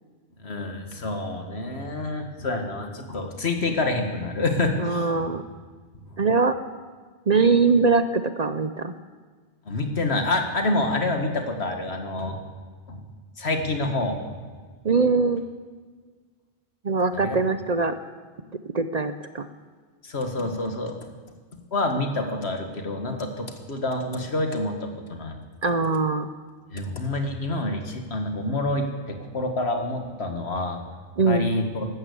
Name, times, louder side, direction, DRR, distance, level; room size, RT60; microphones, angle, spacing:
voice 1, 0.4-5.3 9.7-12.4 12.9-13.0 13.4-14.2 17.2-17.4 20.0-21.0 21.7-25.3 26.7-30.8 31.3-31.9, left 2 dB, 70° left, 4 dB, 2.0 m, -27 dB
voice 2, 4.8-5.4 6.2-6.5 7.3-8.9 14.8-15.4 16.8-17.9 18.7-19.5 25.6-26.3 31.2-31.5, right 4 dB, 45° right, 10 dB, 0.7 m, -22 dB
13.0 x 12.5 x 8.3 m, 1.5 s
omnidirectional pair, 1.1 m